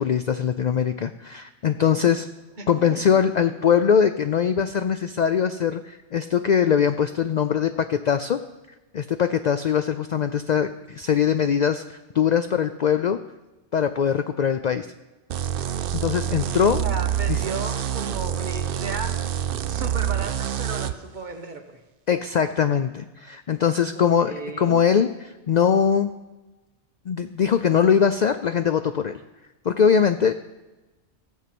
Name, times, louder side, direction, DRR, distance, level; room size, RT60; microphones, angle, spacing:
voice 1, 0.0-2.3 2.7-8.4 8.9-13.2 13.7-14.9 15.9-16.8 17.3-17.4 22.1-26.1 27.1-29.2 29.6-30.3, left 7 dB, 60° left, 10 dB, 0.4 m, -22 dB
voice 2, 2.6-3.2 16.7-19.2 19.6-21.8 23.9-24.8, right 3 dB, 45° right, 4 dB, 1.3 m, -35 dB
sound 1, 15.3-20.9, right 10 dB, 60° right, 0.7 m, -27 dB
15.5 x 7.4 x 6.0 m, 1.1 s
omnidirectional pair, 1.2 m